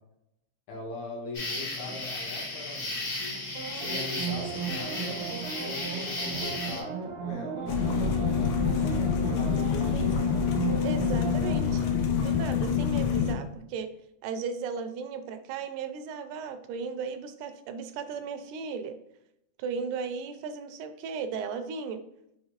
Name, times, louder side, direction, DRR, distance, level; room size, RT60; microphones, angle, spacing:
voice 1, 0.7-3.4 3.7-5.2 5.6-8.7 9.2-10.2, left 3 dB, 70° left, -2 dB, 2.3 m, -41 dB
sound 1, 1.3-6.8, left 2 dB, 40° left, 1.5 m, -35 dB
sound 2, 3.5-12.9 13.3-13.4, right 6 dB, 65° right, 1.2 m, -35 dB
sound 3, 7.7-13.3, left 7 dB, 90° left, 2.2 m, -26 dB
voice 2, 10.8-11.9 12.1-13.9 14.2-19.0 19.6-22.0, right 5 dB, 85° right, 9 dB, 2.0 m, -36 dB
5.6 x 3.3 x 2.9 m, 0.78 s
omnidirectional pair, 3.6 m